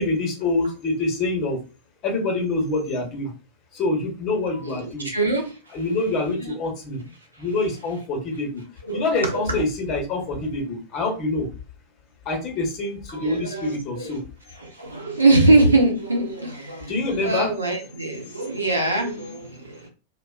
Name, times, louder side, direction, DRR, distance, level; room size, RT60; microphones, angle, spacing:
voice 1, 0.0-1.6 2.0-3.3 3.7-5.1 5.7-7.0 7.4-8.6 8.9-11.5 12.2-14.2 16.9-17.5 19.7-19.9, left 2 dB, 35° left, 1.0 m, -26 dB
voice 2, 4.6-5.8 6.4-6.5 8.8-9.5 13.1-14.1 14.6-19.9, right 2 dB, 80° right, 0.8 m, -23 dB
2.4 x 2.1 x 2.4 m
figure-of-eight pair, 90°, 0 cm